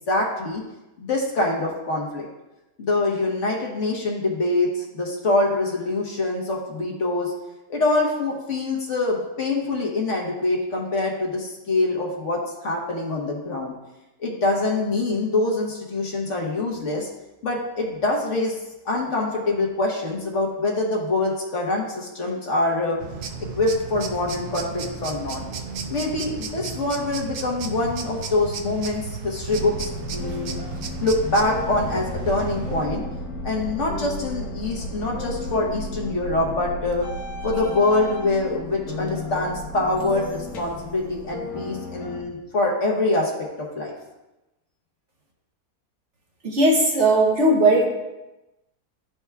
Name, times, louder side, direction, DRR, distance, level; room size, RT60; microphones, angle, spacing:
voice 1, 0.1-0.6 1.0-2.2 2.8-7.3 7.7-13.7 14.2-17.1 17.4-18.6 18.8-23.0 23.5-25.4 25.9-30.6 31.0-33.0 33.4-37.1 37.4-43.3 43.6-43.9, left 2 dB, 55° left, -1 dB, 1.4 m, -24 dB
sound 1, 23.0-32.9, right 5 dB, 85° right, 1.2 m, -34 dB
sound 2, 29.5-42.2, left 1 dB, 80° left, 1.5 m, -33 dB
voice 2, 46.4-47.9, right 2 dB, 55° right, 0 dB, 1.1 m, -17 dB
12.0 x 4.6 x 2.3 m, 1.0 s
omnidirectional pair, 1.6 m